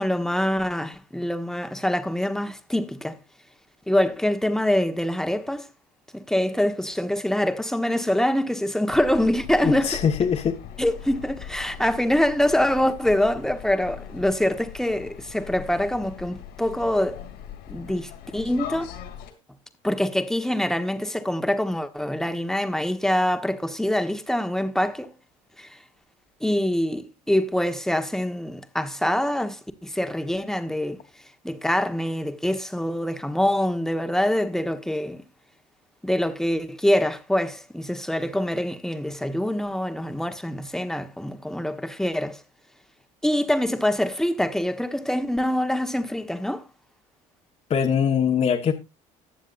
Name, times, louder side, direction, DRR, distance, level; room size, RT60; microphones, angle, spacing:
voice 1, 0.0-3.2 3.9-5.7 6.1-10.0 10.8-17.2 17.7-18.9 19.8-25.1 25.6-25.8 26.4-31.0 31.4-35.2 36.0-42.4 43.2-46.6, left 1 dB, 5° left, 1.3 m, -25 dB
sound 1, 8.9-19.3, left 9 dB, 75° left, 3.1 m, -40 dB
voice 2, 9.6-10.6 47.7-48.7, left 7 dB, 40° left, 1.4 m, -22 dB
20.5 x 7.2 x 2.6 m
supercardioid pair, 90°, 17 cm